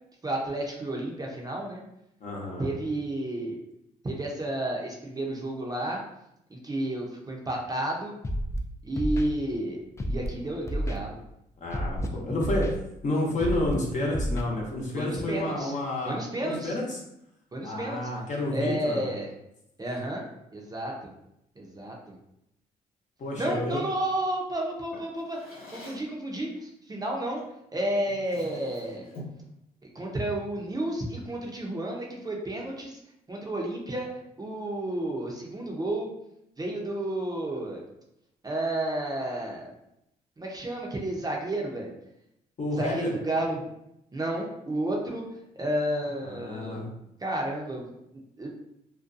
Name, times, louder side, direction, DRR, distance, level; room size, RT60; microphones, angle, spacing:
voice 1, 0.2-1.8 2.6-3.6 4.0-6.0 6.5-8.1 8.8-9.8 10.1-11.2 12.0-12.1 14.9-15.7 16.0-16.7 17.5-18.0 18.5-19.3 19.8-20.2 20.5-20.9 21.6-22.1 23.4-27.4 27.7-29.1 29.9-33.0 33.3-34.1 34.4-36.1 36.6-37.8 38.4-39.7 40.4-41.9 42.8-43.6 44.1-45.2 45.6-46.8 47.2-47.9 48.4-48.5, right 1 dB, 25° right, -1 dB, 0.6 m, -31 dB
voice 2, 2.2-2.8 11.6-12.7 13.0-17.0 17.6-19.1 23.2-23.8 42.6-43.1 46.2-46.9, left 1 dB, 50° left, -2 dB, 0.8 m, -30 dB
Scratching (performance technique), 8.2-8.6 9.0-9.3 10.0-10.3 10.7-11.0 11.7-12.1 12.4-12.7 13.4-13.7 14.1-14.4, equal, 15° left, 0.3 m, -29 dB
Drawer open or close, 24.9-26.2 27.4-27.6 28.0-29.5, left 1 dB, 85° left, 1.1 m, -45 dB
2.5 x 2.2 x 2.5 m, 0.80 s
supercardioid pair, 70°, 17 cm